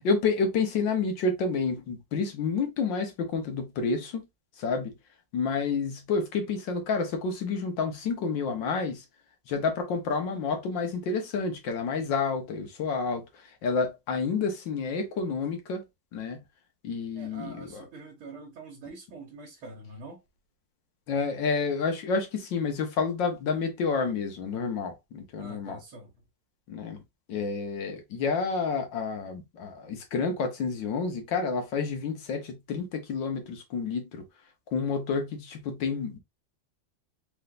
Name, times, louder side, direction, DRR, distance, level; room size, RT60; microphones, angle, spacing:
voice 1, 0.0-4.2 4.6-4.9 5.3-9.0 9.5-13.2 13.6-15.8 16.1-16.4 16.8-17.9 21.1-25.8 26.7-27.0 27.3-34.2 34.7-36.2, left 4 dB, 65° left, 1.6 m, -29 dB
voice 2, 17.2-20.2 25.4-26.2, right 3 dB, 75° right, 2.0 m, -45 dB
4.6 x 3.8 x 2.4 m
omnidirectional pair, 2.3 m